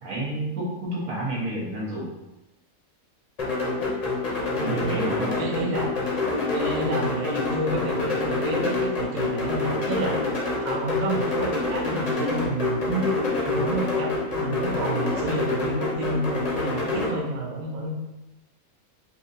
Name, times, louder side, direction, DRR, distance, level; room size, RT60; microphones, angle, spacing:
voice 1, 0.0-2.1 4.6-5.3, right 1 dB, 75° right, -5 dB, 1.6 m, -30 dB
sound 1, 3.4-17.1, left 3 dB, 40° left, 0.5 m, -27 dB
voice 2, 4.6-6.0 6.5-10.2 10.6-13.1 13.5-18.0, right 2 dB, 55° right, -2 dB, 0.5 m, -30 dB
4.2 x 2.7 x 2.6 m, 0.98 s
omnidirectional pair, 1.5 m